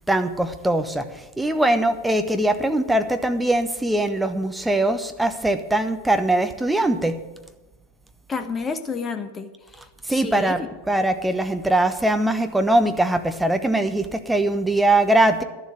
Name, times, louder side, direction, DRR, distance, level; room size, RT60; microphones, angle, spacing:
voice 1, 0.1-1.1 1.4-7.2 10.1-15.4, right 1 dB, 5° right, 7 dB, 1.0 m, -21 dB
voice 2, 8.3-9.5 9.7-10.7, left 5 dB, 15° left, 9 dB, 1.2 m, -30 dB
11.5 x 7.3 x 10.0 m, 1.1 s
figure-of-eight pair, 90°, 0 cm